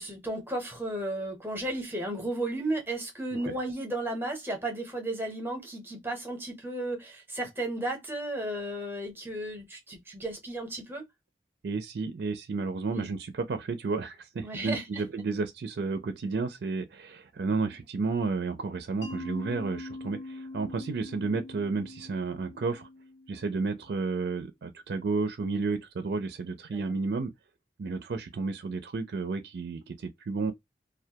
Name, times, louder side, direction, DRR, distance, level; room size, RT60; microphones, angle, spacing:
voice 1, 0.0-11.0 12.9-13.1 14.4-15.0 26.7-26.8, right 1 dB, 10° right, 0.7 m, -34 dB
voice 2, 11.6-22.9 23.3-27.3 27.8-30.5, right 4 dB, 65° right, 0.4 m, -32 dB
Mallet percussion, 19.0-23.8, left 2 dB, 85° left, 0.8 m, -43 dB
2.2 x 2.1 x 2.7 m
head